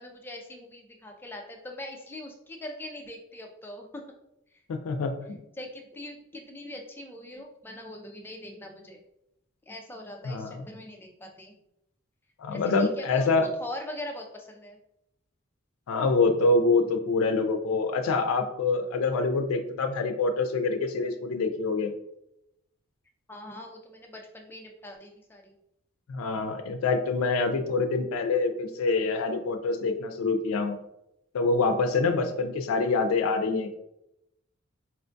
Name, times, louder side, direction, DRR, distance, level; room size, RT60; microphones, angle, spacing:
voice 1, 0.0-4.1 5.6-9.0 9.7-11.5 12.5-13.3 13.6-14.8 23.3-25.5, left 1 dB, 10° left, 2 dB, 0.3 m, -42 dB
voice 2, 4.7-5.1 10.2-10.7 12.4-13.5 15.9-21.9 26.1-30.8 31.3-33.8, left 3 dB, 80° left, 7 dB, 0.4 m, -26 dB
4.3 x 2.2 x 2.5 m, 0.84 s
head